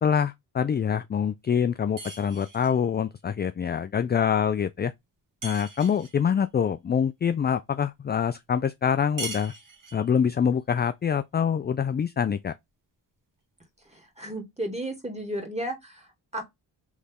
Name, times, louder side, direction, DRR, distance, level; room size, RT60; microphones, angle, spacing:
voice 1, 0.0-4.9 5.4-9.5 9.9-12.5, left 7 dB, 25° left, 0.3 m, -25 dB
sound 1, 2.0-2.8 5.4-6.2 9.2-10.1, right 2 dB, 40° right, 1.8 m, -39 dB
voice 2, 13.8-16.5, right 1 dB, 15° right, 2.4 m, -34 dB
4.1 x 3.2 x 3.6 m
supercardioid pair, 45°, 49 cm